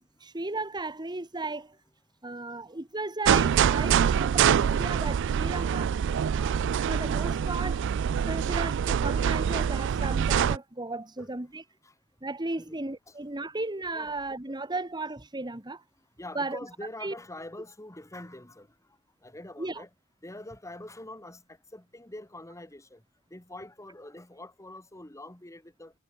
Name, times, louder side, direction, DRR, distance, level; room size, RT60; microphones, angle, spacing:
voice 1, 0.2-1.8 2.2-6.0 6.4-7.9 8.2-11.6 12.2-15.8 16.3-16.6 17.0-17.1 19.6-19.8, right 2 dB, 20° right, 1.5 m, -35 dB
sound 1, 3.2-10.6, right 8 dB, 60° right, 0.3 m, -25 dB
voice 2, 16.2-18.7 19.2-19.9 20.2-23.0 23.3-25.9, left 1 dB, 15° left, 2.6 m, -44 dB
head